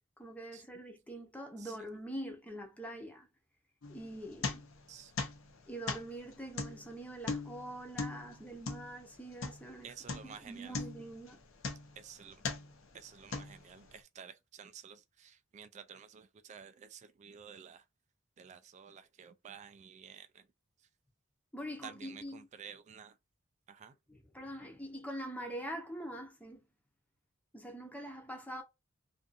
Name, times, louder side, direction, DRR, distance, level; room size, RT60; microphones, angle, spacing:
voice 1, 0.2-3.3 3.9-4.6 5.7-11.4 21.5-22.5 24.1-26.7 27.5-28.6, right 1 dB, 5° left, 0.7 m, -44 dB
sound 1, 3.8-4.9 5.2-9.8 10.1-10.4 10.7-12.0 12.4-12.8 13.3-13.9, left 4 dB, 70° left, 0.6 m, -39 dB
voice 2, 9.8-10.8 12.0-12.5 12.9-17.8 18.4-20.5 21.8-23.2 23.7-24.0, right 7 dB, 35° right, 0.3 m, -52 dB
2.5 x 2.4 x 2.4 m
head